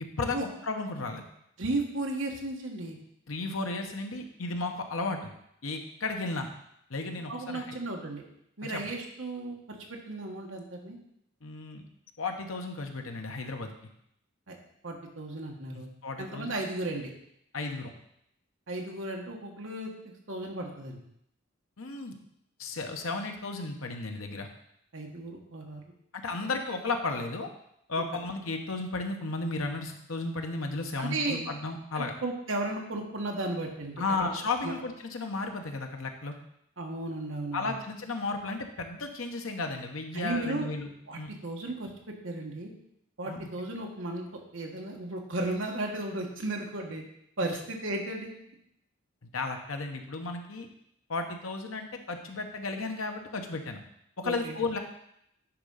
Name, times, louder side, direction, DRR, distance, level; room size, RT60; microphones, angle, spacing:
voice 1, 0.2-1.2 3.3-5.3 5.6-6.5 6.9-7.8 8.6-8.8 11.4-11.8 12.2-13.7 15.7-16.6 17.5-17.9 21.8-22.2 22.6-24.5 26.1-27.5 27.9-32.1 34.0-36.3 37.5-41.3 43.3-43.5 49.3-50.7 51.1-53.8 54.2-54.8, left 3 dB, 85° left, 4 dB, 1.1 m, -34 dB
voice 2, 1.6-3.0 7.3-8.2 8.6-9.6 9.9-11.0 14.5-14.6 14.8-15.9 16.2-17.1 18.7-19.9 20.3-21.0 24.9-25.8 26.4-26.5 31.0-31.4 31.9-34.3 34.6-34.7 36.8-37.7 40.1-40.7 41.1-42.7 43.2-44.2 44.5-47.0 47.4-48.3 54.2-54.6, right 2 dB, 65° right, 1 dB, 1.5 m, -35 dB
10.0 x 3.7 x 5.6 m, 0.75 s
head